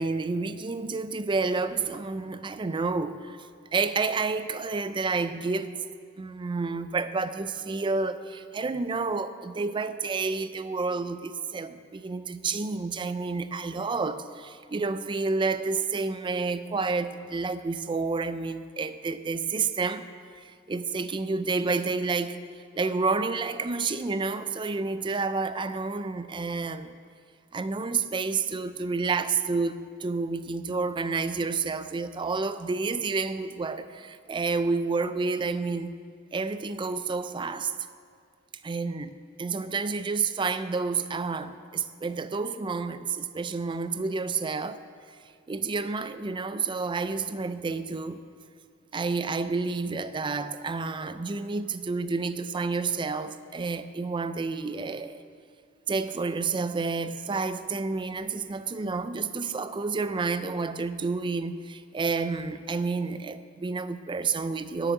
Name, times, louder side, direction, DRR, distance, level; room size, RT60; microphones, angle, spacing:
voice 1, 0.0-5.7 6.2-20.1 20.3-22.4 22.7-27.0 27.5-36.0 36.3-37.7 38.6-39.1 39.4-44.8 45.5-48.2 48.9-55.2 55.9-64.9, right 4 dB, 25° right, 12 dB, 0.4 m, -30 dB
9.5 x 7.1 x 8.8 m, 2.2 s
head